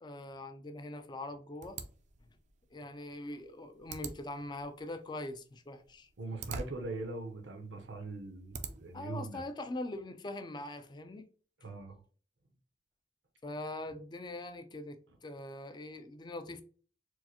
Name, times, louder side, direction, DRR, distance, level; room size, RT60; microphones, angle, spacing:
voice 1, 0.0-1.8 2.7-6.1 8.9-11.3 13.4-16.6, left 2 dB, 25° left, 0.4 m, -42 dB
sound 1, 1.6-9.1, right 4 dB, 40° right, 0.4 m, -47 dB
voice 2, 6.2-9.4 11.6-12.0, right 3 dB, 75° right, 0.7 m, -41 dB
4.5 x 2.0 x 2.9 m
head